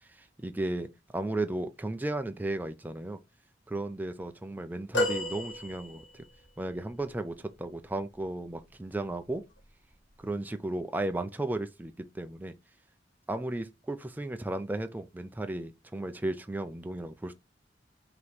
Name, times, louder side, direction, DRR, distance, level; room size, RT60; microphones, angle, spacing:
voice 1, 0.1-3.2 3.7-6.2 6.6-9.4 10.2-12.5 13.3-17.3, right 2 dB, 10° right, 0.3 m, -34 dB
sound 1, 4.9-6.4 7.1-7.2, left 1 dB, 85° left, 1.5 m, -31 dB
5.0 x 2.9 x 3.1 m
head